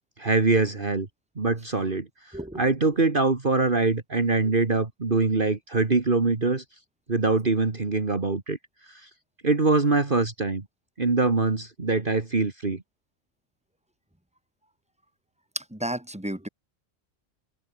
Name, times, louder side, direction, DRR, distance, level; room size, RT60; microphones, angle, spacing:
voice 1, 0.2-1.1 1.4-6.6 7.1-8.6 8.9-9.1 9.4-10.7 11.0-12.8, right 3 dB, 40° right, 2.1 m, -24 dB
voice 2, 15.5-16.5, right 1 dB, 5° right, 3.1 m, -32 dB
open air
omnidirectional pair, 1.3 m